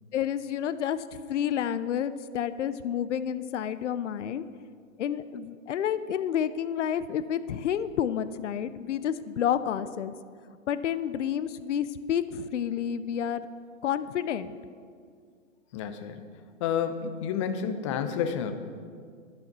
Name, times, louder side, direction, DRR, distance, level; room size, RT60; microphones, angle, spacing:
voice 1, 0.1-4.4 5.0-10.1 10.7-13.5 13.8-14.6, left 9 dB, 65° left, 14 dB, 0.6 m, -30 dB
voice 2, 15.7-16.2 16.6-18.5, left 7 dB, 25° left, 9 dB, 0.6 m, -30 dB
12.0 x 7.4 x 6.1 m, 2.1 s
hypercardioid pair, 140°, 40 cm